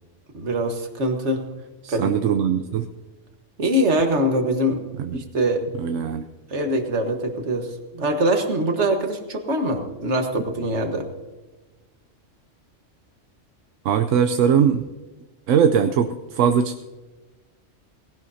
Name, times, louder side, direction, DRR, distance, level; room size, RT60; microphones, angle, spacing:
voice 1, 0.3-1.4 1.9-2.1 3.6-4.8 5.1-5.6 6.5-11.1, right 1 dB, 65° right, 5 dB, 1.7 m, -23 dB
voice 2, 1.8-2.9 5.0-5.2 5.7-6.2 13.8-14.8 15.5-16.8, right 7 dB, 85° right, 7 dB, 1.0 m, -20 dB
19.0 x 17.0 x 2.8 m, 1.2 s
omnidirectional pair, 1.3 m